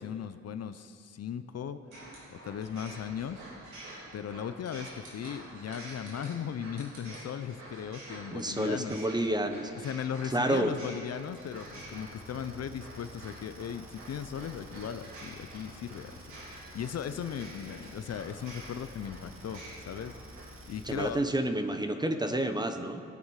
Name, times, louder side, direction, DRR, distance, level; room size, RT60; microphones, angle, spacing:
voice 1, 0.0-1.8 2.3-3.4 4.1-9.0 9.8-20.1 20.7-21.2, left 8 dB, 55° left, 11 dB, 0.6 m, -38 dB
sound 1, 1.9-20.4, right 2 dB, 70° right, 3.6 m, -48 dB
voice 2, 8.3-9.9 10.2-10.7 20.8-23.0, right 1 dB, 15° right, 7 dB, 1.0 m, -30 dB
sound 2, 11.1-21.3, equal, 45° right, 2.1 m, -50 dB
17.0 x 9.1 x 4.8 m, 2.3 s
cardioid pair, 85°, 30 cm